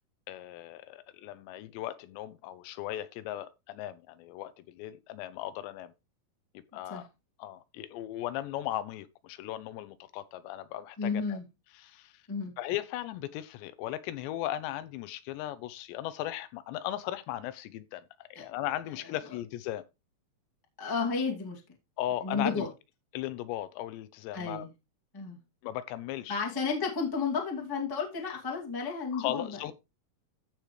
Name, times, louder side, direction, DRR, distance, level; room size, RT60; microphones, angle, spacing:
voice 1, 0.3-5.9 6.7-7.1 7.4-11.4 11.7-12.2 12.6-19.8 22.0-22.7 23.1-24.7 25.6-26.4 29.1-29.7, left 13 dB, 90° left, 3.0 m, -37 dB
voice 2, 11.0-11.4 12.3-12.5 18.3-18.4 20.8-21.6 22.2-22.7 24.3-24.7 25.1-25.4 26.3-29.7, left 5 dB, 15° left, 0.7 m, -32 dB
15.0 x 5.1 x 3.2 m
omnidirectional pair, 5.0 m